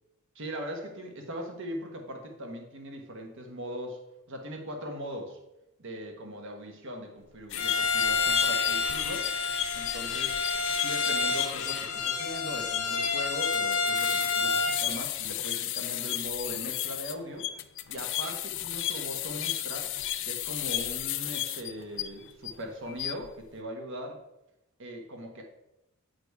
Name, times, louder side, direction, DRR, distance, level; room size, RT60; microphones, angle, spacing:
voice 1, 0.3-4.0 4.3-5.4 5.8-9.3 9.7-10.4 10.8-17.5 17.9-19.9 20.2-24.2 24.8-25.4, equal, 55° right, 3 dB, 1.2 m, -40 dB
sound 1, 7.5-22.5 22.9-23.3, left 12 dB, 55° left, 0.4 m, -34 dB
Bowed string instrument, 7.6-14.8, left 4 dB, 85° left, 0.8 m, -29 dB
8.1 x 4.0 x 4.7 m, 0.90 s
head